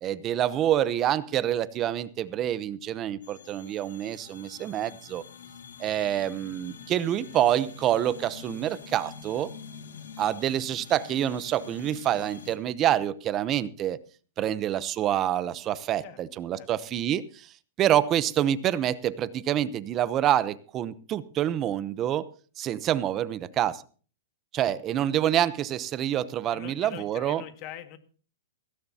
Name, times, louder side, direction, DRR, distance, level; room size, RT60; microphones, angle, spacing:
voice 1, 0.0-5.2 5.8-9.5 10.2-14.0 14.4-17.5 17.8-22.3 22.6-23.8 24.5-27.4, right 11 dB, 25° right, 16 dB, 0.8 m, -27 dB
sound 1, 3.2-12.6, left 6 dB, 90° left, 2.2 m, -46 dB
voice 2, 26.5-28.0, left 12 dB, 35° left, 8 dB, 1.9 m, -43 dB
17.0 x 16.5 x 2.9 m, 0.40 s
hypercardioid pair, 155°, 0 cm